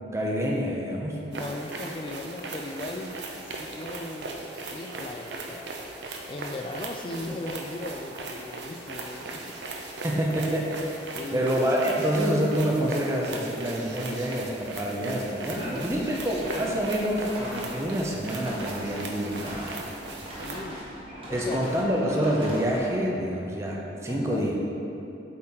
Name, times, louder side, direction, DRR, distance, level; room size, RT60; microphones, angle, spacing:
voice 1, 0.1-1.2 10.0-11.0 11.3-19.8 21.3-24.6, equal, 15° right, -2 dB, 0.6 m, -27 dB
voice 2, 1.3-3.2 3.5-5.7 6.3-9.5 11.1-11.7 15.5-16.2 20.2-20.9 21.3-21.7 24.1-24.5, left 2 dB, 30° left, 5 dB, 0.4 m, -38 dB
sound 1, 1.3-20.6, right 2 dB, 75° right, 0.7 m, -38 dB
sound 2, 15.6-22.9, equal, 30° right, 1.2 m, -40 dB
7.8 x 4.4 x 3.7 m, 2.8 s
head